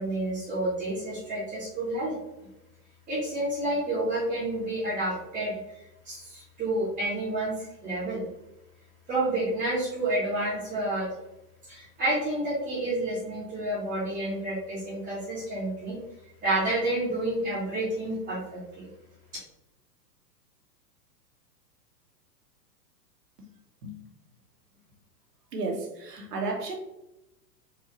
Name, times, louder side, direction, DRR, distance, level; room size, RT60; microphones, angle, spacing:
voice 1, 0.0-2.2 3.1-5.5 6.0-8.2 9.1-11.1 11.7-16.0 16.4-18.9, right 1 dB, 15° right, -9 dB, 1.1 m, -29 dB
voice 2, 25.5-26.8, right 3 dB, 70° right, 0 dB, 1.3 m, -33 dB
4.3 x 2.4 x 3.0 m, 0.92 s
hypercardioid pair, 110°, 50 cm